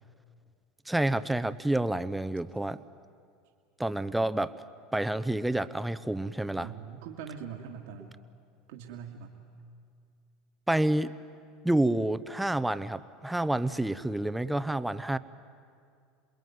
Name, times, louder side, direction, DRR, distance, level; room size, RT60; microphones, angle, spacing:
voice 1, 0.9-2.8 3.8-4.5 4.9-6.7 10.7-11.1 11.6-15.2, right 1 dB, 5° right, 13 dB, 0.8 m, -28 dB
voice 2, 6.6-8.1 8.7-9.3, right 7 dB, 80° right, 1 dB, 2.2 m, -42 dB
27.5 x 21.5 x 9.5 m, 2.3 s
supercardioid pair, 115°, 0 cm